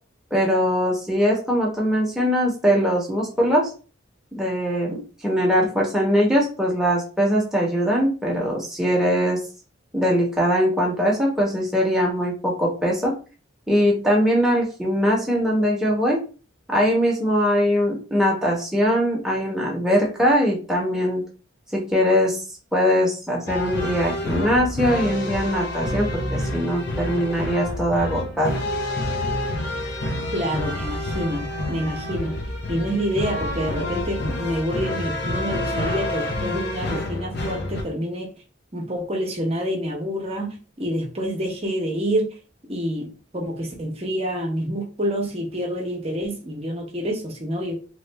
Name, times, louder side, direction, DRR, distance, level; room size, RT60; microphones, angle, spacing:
voice 1, 0.3-3.7 4.3-9.4 9.9-13.2 13.7-16.2 16.7-21.2 21.7-22.4 22.7-28.6, equal, 5° right, -3 dB, 1.0 m, -21 dB
sound 1, 23.5-37.8, left 1 dB, 55° left, 0.7 m, -28 dB
voice 2, 30.3-32.3 32.7-38.3 38.7-42.3 42.7-47.8, equal, 30° right, 1 dB, 0.9 m, -27 dB
3.0 x 2.5 x 3.3 m, 0.36 s
head